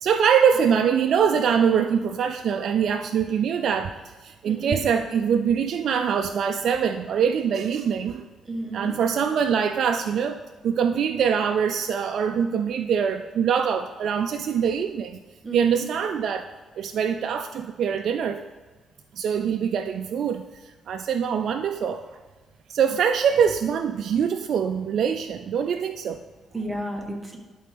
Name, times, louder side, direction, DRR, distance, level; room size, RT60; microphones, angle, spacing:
voice 1, 0.0-3.9 4.2-8.2 8.7-15.2 15.5-16.5 16.8-18.4 19.2-22.2 22.7-26.2, right 7 dB, 65° right, 7 dB, 0.3 m, -23 dB
voice 2, 4.4-4.8 8.5-8.9 15.4-15.9 26.5-27.4, right 1 dB, 15° right, 1 dB, 1.3 m, -32 dB
11.0 x 4.3 x 3.4 m, 1.3 s
cardioid pair, 90°, 0 cm